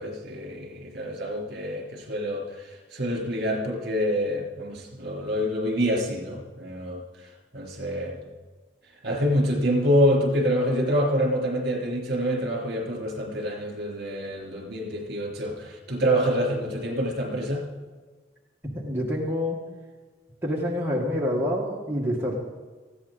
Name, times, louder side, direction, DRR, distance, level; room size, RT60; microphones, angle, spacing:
voice 1, 0.0-7.0 7.5-8.2 9.0-17.7, equal, 55° right, 1 dB, 3.5 m, -26 dB
voice 2, 18.7-19.6 20.4-22.4, left 1 dB, 10° right, -4 dB, 1.7 m, -27 dB
19.0 x 14.5 x 4.0 m, 1.4 s
head